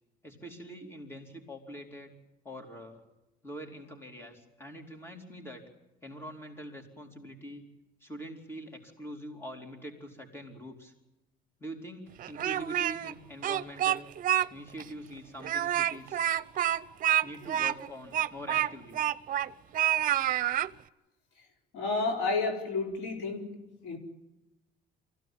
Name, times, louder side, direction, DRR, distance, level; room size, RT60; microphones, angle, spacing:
voice 1, 0.2-2.1 2.4-3.0 3.4-5.6 6.0-7.6 8.0-10.9 11.6-14.1 14.5-16.2 17.2-19.0, equal, 15° left, 2 dB, 4.3 m, -44 dB
Speech, 12.2-13.1 13.4-14.5 14.8-14.9 15.4-19.5 19.7-20.7, right 12 dB, 55° right, 0.8 m, -28 dB
voice 2, 21.7-23.5 23.8-24.0, left 3 dB, 85° left, 3 dB, 4.5 m, -31 dB
24.5 x 16.0 x 9.3 m, 1.0 s
cardioid pair, 110°, 17 cm